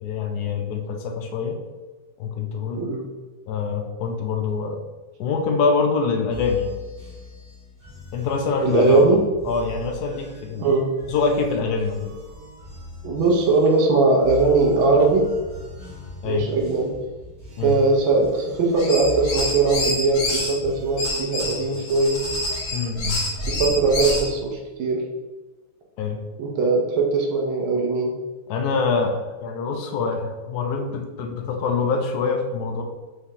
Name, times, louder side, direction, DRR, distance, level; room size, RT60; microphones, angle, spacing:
voice 1, 0.0-1.6 2.2-2.8 3.5-4.8 5.2-6.8 8.1-9.1 9.4-10.7 11.1-12.2 16.2-16.5 17.6-17.7 22.7-23.2 26.0-26.2 28.5-32.8, left 4 dB, 75° left, 3 dB, 0.9 m, -25 dB
sound 1, 6.3-23.6, left 2 dB, 50° right, 1.6 m, -40 dB
voice 2, 8.6-9.2 10.6-10.9 13.0-15.3 16.2-16.9 17.6-22.2 23.5-25.0 26.4-28.1, right 3 dB, 85° right, 0 dB, 1.5 m, -20 dB
sound 2, 18.7-20.5 21.0-24.3, left 1 dB, 55° left, 1.5 m, -27 dB
4.8 x 3.2 x 2.8 m, 1.3 s
omnidirectional pair, 2.1 m